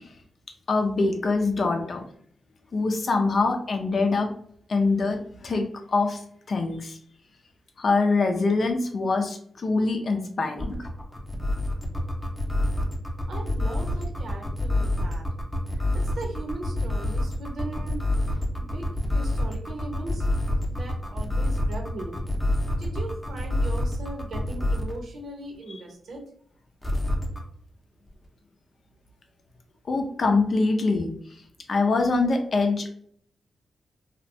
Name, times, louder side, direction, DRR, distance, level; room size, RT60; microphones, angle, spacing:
voice 1, 0.7-2.0 2.7-4.3 4.7-5.7 5.9-6.2 6.5-7.0 7.8-10.8 29.9-31.1 31.7-32.9, left 3 dB, 55° left, 4 dB, 0.5 m, -24 dB
sound 1, 10.6-25.0 26.8-27.4, left 1 dB, 15° left, 0.7 m, -27 dB
voice 2, 13.3-15.3 15.9-20.3 20.7-22.2 22.8-26.2, right 2 dB, 75° right, 1 dB, 0.8 m, -39 dB
2.8 x 2.2 x 2.6 m, 0.63 s
supercardioid pair, 50°, 0 cm